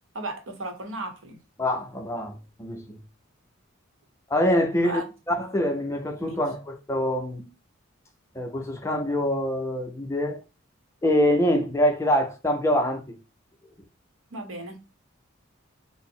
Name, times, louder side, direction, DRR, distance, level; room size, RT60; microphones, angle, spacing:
voice 1, 0.1-1.4 4.8-5.0 6.3-6.5 14.3-14.8, right 2 dB, 70° right, 0.8 m, -35 dB
voice 2, 1.6-3.0 4.3-5.0 5.4-7.5 8.4-10.4 11.0-13.0, left 1 dB, 15° left, 0.4 m, -25 dB
3.8 x 2.0 x 3.7 m
head